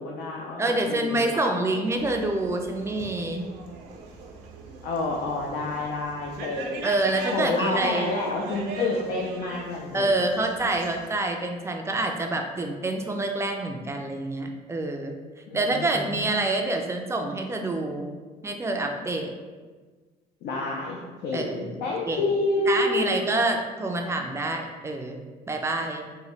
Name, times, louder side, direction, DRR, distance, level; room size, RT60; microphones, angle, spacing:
voice 1, 0.0-1.6 4.8-7.0 7.3-10.2 15.5-16.2 20.4-23.2, left 2 dB, 75° left, -1 dB, 0.5 m, -29 dB
voice 2, 0.6-3.5 6.8-8.2 9.9-15.2 15.5-18.1 18.4-19.3 21.3-21.8 22.1-22.2 22.7-25.2 25.5-26.0, right 2 dB, 15° right, 3 dB, 0.4 m, -27 dB
sound 1, 2.0-11.1, right 3 dB, 80° right, 0.5 m, -41 dB
3.1 x 2.2 x 3.9 m, 1.4 s
cardioid pair, 110°, 17 cm